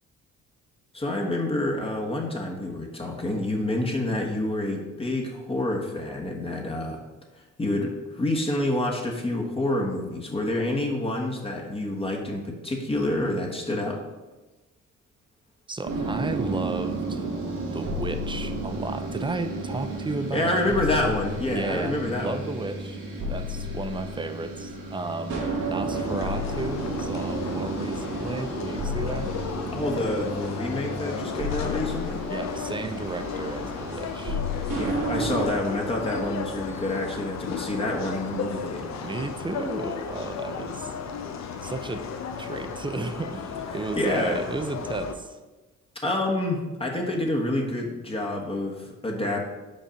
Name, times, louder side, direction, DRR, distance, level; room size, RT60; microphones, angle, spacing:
voice 1, 0.9-7.0 7.4-14.0 20.3-22.4 29.7-32.2 34.8-38.9 44.0-44.4 46.0-49.4, left 1 dB, 20° left, 0 dB, 1.2 m, -28 dB
voice 2, 15.7-17.3 17.7-21.1 21.5-21.9 22.2-23.0 23.3-25.4 25.7-29.3 32.3-34.4 39.0-40.9 41.6-42.0 42.4-45.4, right 3 dB, 15° right, 9 dB, 0.6 m, -33 dB
sound 1, 15.8-35.5, right 1 dB, 90° right, 2.0 m, -32 dB
sound 2, 25.9-45.2, left 6 dB, 65° left, 0.7 m, -35 dB
5.5 x 4.2 x 5.1 m, 1.1 s
cardioid pair, 90°, 30 cm